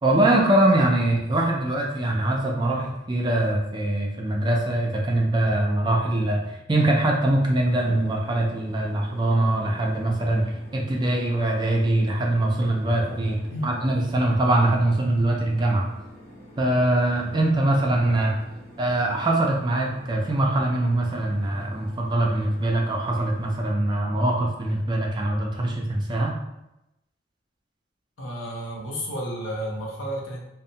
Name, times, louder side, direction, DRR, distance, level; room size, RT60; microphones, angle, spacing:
voice 1, 0.0-15.9 16.6-18.4 18.8-26.4, right 1 dB, 20° right, -1 dB, 0.3 m, -23 dB
sound 1, 7.6-23.6, equal, 35° left, 0.5 m, -47 dB
voice 2, 28.2-30.4, equal, 75° left, -2 dB, 0.6 m, -31 dB
2.6 x 2.0 x 2.7 m, 0.91 s
head